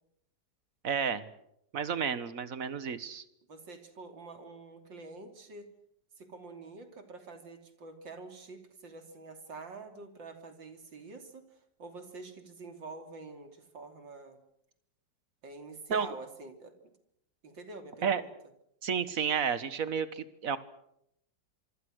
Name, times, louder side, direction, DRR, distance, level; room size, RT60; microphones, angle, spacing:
voice 1, 0.8-1.3 1.7-3.2 15.9-16.1 18.0-18.2 18.8-20.6, right 7 dB, 50° right, 13 dB, 1.8 m, -31 dB
voice 2, 3.5-5.7 6.2-14.4 15.4-16.9 17.4-18.3, right 3 dB, 85° right, 6 dB, 3.7 m, -47 dB
26.0 x 24.5 x 6.5 m, 0.74 s
omnidirectional pair, 2.0 m